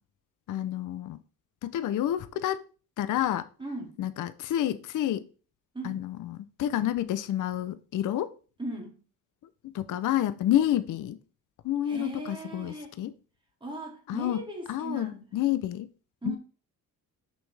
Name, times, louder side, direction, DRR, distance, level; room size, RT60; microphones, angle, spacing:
voice 1, 0.5-1.2 1.6-2.7 3.0-3.5 4.0-5.3 5.8-8.3 9.6-11.2 11.6-13.1 14.1-14.4 14.7-15.9 16.2-16.4, left 12 dB, 60° left, 0.5 m, -29 dB
voice 2, 3.6-3.9 5.7-6.0 8.6-9.0 11.9-12.9 13.6-15.3 16.2-16.4, right 2 dB, 15° right, 2.1 m, -38 dB
6.2 x 5.4 x 3.2 m
cardioid pair, 135°, 35 cm